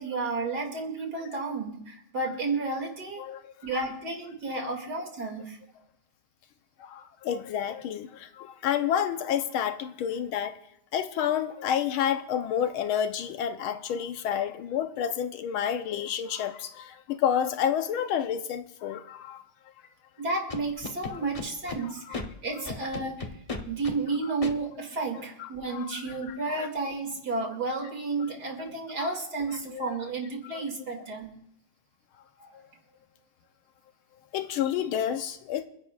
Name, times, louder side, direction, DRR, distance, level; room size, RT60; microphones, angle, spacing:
voice 1, 0.0-3.2 3.6-5.6 20.2-23.3 23.7-31.3 32.4-32.5, right 3 dB, 50° right, 2.9 m, -32 dB
voice 2, 3.2-3.9 4.5-4.6 6.8-10.6 10.9-19.4 21.8-22.1 22.6-22.7 23.1-23.2 24.2-24.3 25.1-26.0 26.3-26.7 29.0-29.1 29.7-30.0 30.5-30.6 34.3-35.6, left 9 dB, 90° left, 1.7 m, -30 dB
Scratching (performance technique), 20.5-21.8 22.1-22.3 22.7-24.0 24.4-24.5, left 3 dB, 45° left, 0.4 m, -35 dB
29.0 x 10.5 x 2.4 m
omnidirectional pair, 2.2 m